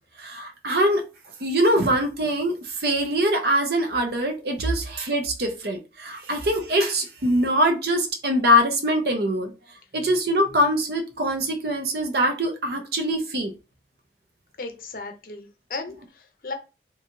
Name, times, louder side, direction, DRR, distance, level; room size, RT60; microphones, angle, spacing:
voice 1, 0.2-1.0 1.4-9.5 9.9-13.5, equal, 60° right, 0.7 m, -23 dB
voice 2, 14.6-16.5, left 3 dB, 55° left, 0.6 m, -36 dB
3.0 x 2.4 x 2.6 m
head